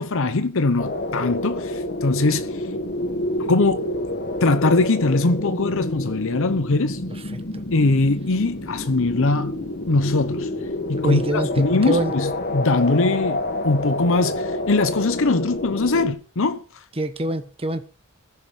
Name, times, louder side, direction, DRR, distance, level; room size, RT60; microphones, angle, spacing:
voice 1, 0.0-2.6 3.5-3.8 4.4-7.0 7.7-9.6 9.9-10.5 10.9-16.6, left 3 dB, 65° left, 0.9 m, -21 dB
sound 1, 0.8-16.1, left 1 dB, 45° left, 1.6 m, -28 dB
voice 2, 11.0-12.1 17.0-17.8, right 1 dB, 25° right, 1.3 m, -25 dB
15.5 x 7.6 x 7.3 m
head